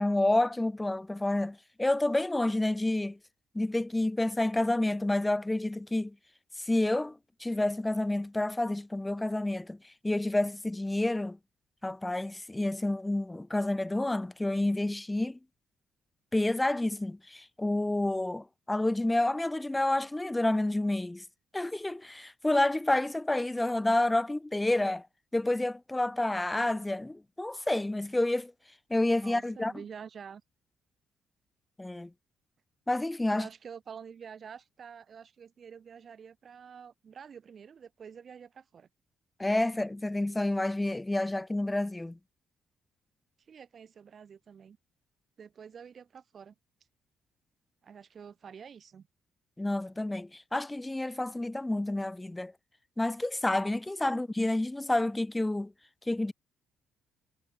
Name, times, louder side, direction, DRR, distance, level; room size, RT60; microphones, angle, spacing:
voice 1, 0.0-3.2 3.5-6.1 6.6-9.8 10.0-11.4 11.8-15.4 16.3-21.2 21.5-25.1 25.3-28.5 28.9-29.7 31.8-32.1 32.9-33.5 39.4-42.2 49.6-52.5 53.0-55.7 56.1-56.3, left 1 dB, 10° left, 0.7 m, -29 dB
voice 2, 29.2-30.4 33.3-38.9 43.5-44.8 45.4-46.5 47.8-49.1 54.1-54.2, right 7 dB, 50° right, 2.4 m, -48 dB
cardioid pair, 90°, 0 cm